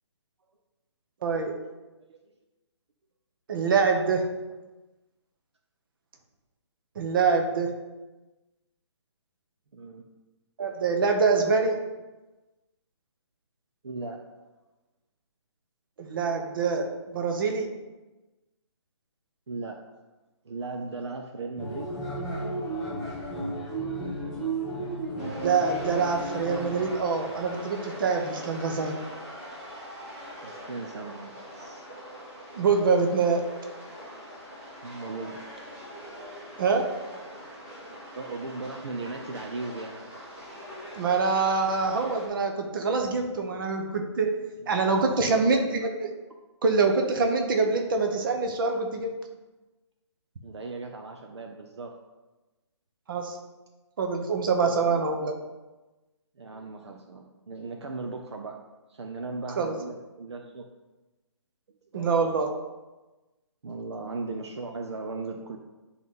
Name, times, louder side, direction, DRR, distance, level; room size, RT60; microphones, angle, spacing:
voice 1, 1.2-1.5 3.5-4.3 7.0-7.7 10.6-11.8 16.0-17.7 25.3-29.0 32.5-33.4 36.6-37.0 40.9-46.1 46.6-49.2 53.1-53.4 54.0-55.3 59.6-59.7 61.9-62.5, right 4 dB, 45° right, 4 dB, 1.0 m, -25 dB
voice 2, 9.7-10.1 13.8-14.2 19.5-19.8 20.4-21.9 30.4-31.9 34.8-35.5 38.1-40.1 44.6-45.9 50.4-51.9 54.7-55.0 56.4-58.5 58.9-60.6 61.9-62.4 63.6-65.6, right 3 dB, 65° right, 3 dB, 0.8 m, -38 dB
sound 1, 21.6-26.9, right 2 dB, ahead, 2.4 m, -33 dB
sound 2, 25.2-42.3, equal, 25° right, 2.4 m, -42 dB
10.0 x 4.0 x 3.8 m, 1.1 s
hypercardioid pair, 150°, 15 cm